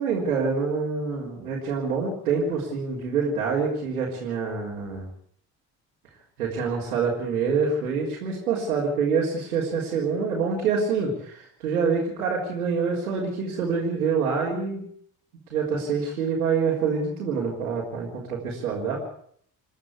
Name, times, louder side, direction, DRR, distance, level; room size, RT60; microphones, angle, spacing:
voice 1, 0.0-5.1 6.4-14.8 15.5-19.0, right 5 dB, 75° right, -5 dB, 4.2 m, -26 dB
27.5 x 11.5 x 8.3 m, 0.63 s
figure-of-eight pair, 45°, 43 cm